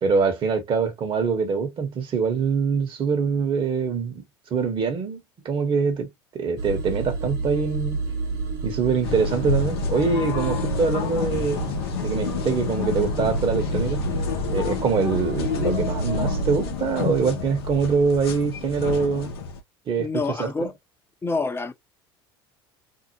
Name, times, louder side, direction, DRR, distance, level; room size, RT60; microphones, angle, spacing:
voice 1, 0.0-4.2 4.5-5.2 5.4-6.1 6.3-8.0 8.6-11.7 12.0-14.0 14.5-19.3 19.9-20.5, right 5 dB, 45° right, 1.2 m, -24 dB
sound 1, 6.6-16.7, right 4 dB, 70° right, 1.3 m, -30 dB
sound 2, 9.0-19.6, left 6 dB, 80° left, 0.7 m, -29 dB
voice 2, 20.0-20.7 21.2-21.7, left 4 dB, 20° left, 0.7 m, -27 dB
2.8 x 2.2 x 2.8 m
hypercardioid pair, 80°, 13 cm